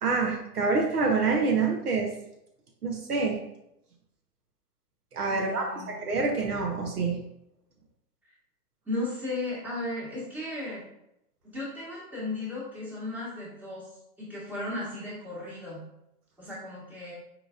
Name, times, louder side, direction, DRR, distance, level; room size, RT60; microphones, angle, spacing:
voice 1, 0.0-2.1 2.8-3.4 5.1-7.2, right 4 dB, 70° right, 1 dB, 1.0 m, -26 dB
voice 2, 5.3-5.9 8.8-10.8 11.4-13.9 14.2-15.8 16.4-17.1, left 2 dB, 5° right, -8 dB, 1.3 m, -35 dB
4.8 x 3.7 x 2.4 m, 0.81 s
figure-of-eight pair, 105°, 48 cm